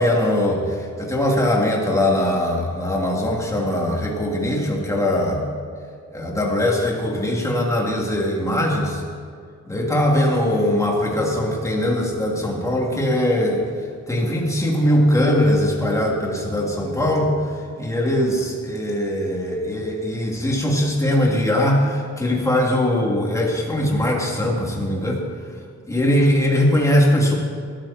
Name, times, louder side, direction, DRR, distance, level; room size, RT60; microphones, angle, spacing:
voice 1, 0.0-5.4 6.1-9.0 9.7-13.7 14.1-25.2 25.9-27.3, left 1 dB, 10° left, -2 dB, 3.2 m, -21 dB
21.0 x 14.0 x 4.5 m, 2.2 s
wide cardioid pair, 125°, 30 cm